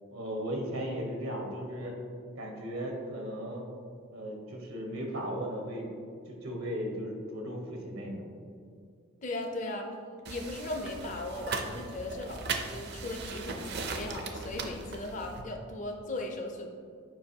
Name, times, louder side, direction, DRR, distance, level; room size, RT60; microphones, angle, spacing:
voice 1, 0.1-1.9 2.4-3.6 4.1-5.9 6.3-8.2, equal, 85° right, 0 dB, 1.2 m, -36 dB
voice 2, 9.2-9.9 10.3-16.7, left 2 dB, 35° left, 2 dB, 0.5 m, -37 dB
sound 1, 10.3-15.4, right 4 dB, 50° right, 0.5 m, -38 dB
7.4 x 5.1 x 2.8 m, 2.3 s
head